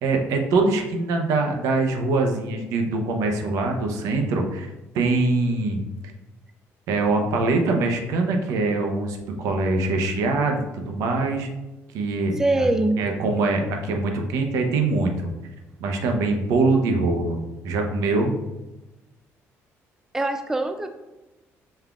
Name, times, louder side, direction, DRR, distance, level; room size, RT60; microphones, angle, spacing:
voice 1, 0.0-4.7 4.9-5.8 6.9-11.5 11.9-12.6 13.0-15.3 15.8-18.3, right 3 dB, 85° right, 3 dB, 0.7 m, -23 dB
voice 2, 12.4-13.0 20.1-20.9, right 2 dB, 10° right, 7 dB, 0.3 m, -23 dB
5.5 x 3.5 x 2.3 m, 1.0 s
cardioid pair, 115°, 5 cm